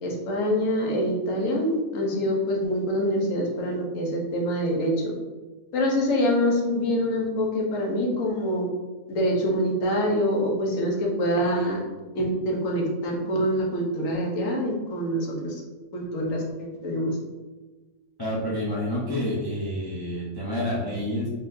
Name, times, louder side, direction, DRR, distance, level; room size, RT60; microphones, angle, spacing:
voice 1, 0.0-4.9 5.7-8.7 9.1-11.8 12.1-15.6 15.9-17.2, equal, 65° left, -1 dB, 1.3 m, -25 dB
voice 2, 18.2-21.3, left 1 dB, 30° left, -8 dB, 0.4 m, -28 dB
4.0 x 3.8 x 2.6 m, 1.2 s
omnidirectional pair, 1.5 m